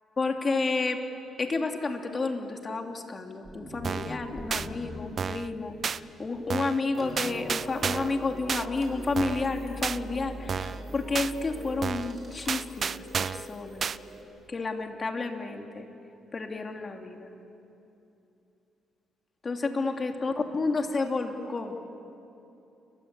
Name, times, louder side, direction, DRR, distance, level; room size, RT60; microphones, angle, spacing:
voice 1, 0.2-1.0 1.4-5.7 6.2-13.8 14.5-15.9 16.3-17.3 19.4-21.8, left 3 dB, 35° left, 3 dB, 3.0 m, -31 dB
sound 1, 3.4-7.7, equal, ahead, 5.5 m, -44 dB
sound 2, 3.8-4.2 4.5-4.7 5.2-5.5 5.8-6.0 6.5-6.8 7.2-8.2 8.5-8.7 9.2-9.5 9.8-10.0 10.5-10.8 11.1-11.3 11.8-12.1 12.5-13.5 13.8-14.0, right 6 dB, 45° right, 0.6 m, -31 dB
sound 3, 6.9-14.2, right 1 dB, 30° right, 8.0 m, -42 dB
29.5 x 23.5 x 8.6 m, 2.8 s
cardioid pair, 90°, 0 cm